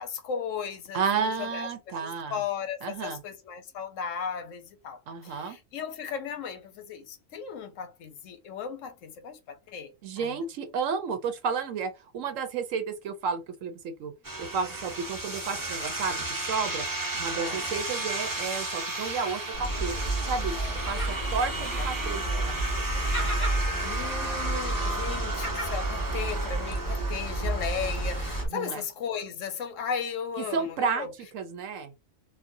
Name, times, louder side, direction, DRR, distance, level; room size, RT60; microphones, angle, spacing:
voice 1, 0.0-10.5 14.6-14.7 17.3-17.7 21.5-21.9 22.3-22.6 23.8-31.1, left 7 dB, 80° left, 1.0 m, -36 dB
voice 2, 0.9-2.4 2.8-3.2 5.1-5.6 10.0-14.1 14.4-16.9 17.1-20.0 20.3-20.6 20.9-22.7 23.0-23.3 28.5-28.8 30.5-31.1 31.3-31.9, right 5 dB, 80° right, 1.0 m, -32 dB
sound 1, 14.2-28.4, right 2 dB, 20° right, 0.6 m, -34 dB
Gull seagull, 19.5-28.5, right 2 dB, 20° left, 1.3 m, -31 dB
4.1 x 2.4 x 2.6 m
omnidirectional pair, 1.3 m